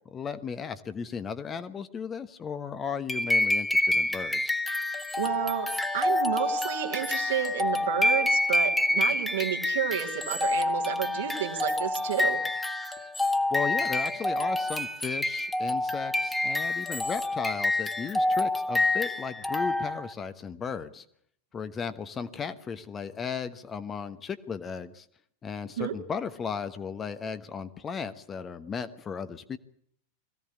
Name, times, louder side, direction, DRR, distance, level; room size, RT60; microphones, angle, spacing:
voice 1, 0.1-4.6 13.5-21.0 21.5-25.0 25.4-29.6, left 6 dB, 20° left, 11 dB, 1.1 m, -35 dB
sound 1, 3.1-20.1, left 2 dB, 5° left, 1.7 m, -27 dB
voice 2, 5.2-12.4 25.8-25.9, right 10 dB, 60° right, 2 dB, 2.6 m, -31 dB
21.5 x 16.0 x 8.5 m, 0.64 s
figure-of-eight pair, 90°, 0 cm